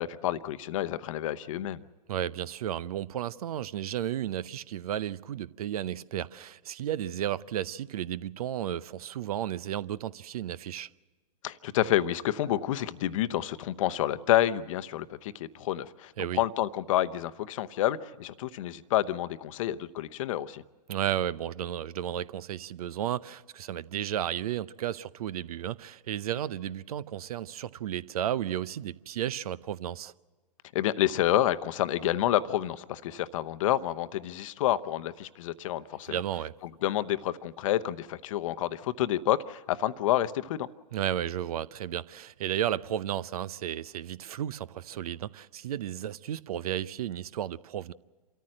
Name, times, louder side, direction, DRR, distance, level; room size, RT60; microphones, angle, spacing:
voice 1, 0.0-1.8 11.4-20.6 30.7-36.2 36.8-40.7, left 13 dB, 50° left, 0.8 m, -29 dB
voice 2, 2.1-10.9 16.2-16.4 20.9-30.1 36.1-36.5 40.9-47.9, right 11 dB, 60° right, 0.7 m, -33 dB
27.0 x 14.0 x 7.7 m
hypercardioid pair, 120°, 21 cm